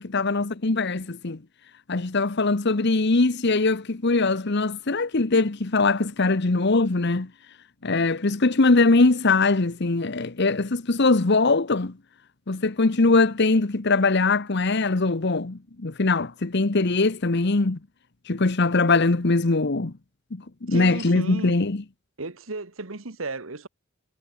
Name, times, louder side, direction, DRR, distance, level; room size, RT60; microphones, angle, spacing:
voice 1, 0.0-1.4 1.9-7.3 7.8-11.9 12.5-17.8 18.3-19.9 20.3-21.8, left 3 dB, 55° left, 1.0 m, -22 dB
voice 2, 20.7-21.5 22.2-23.7, right 3 dB, 75° right, 1.6 m, -34 dB
head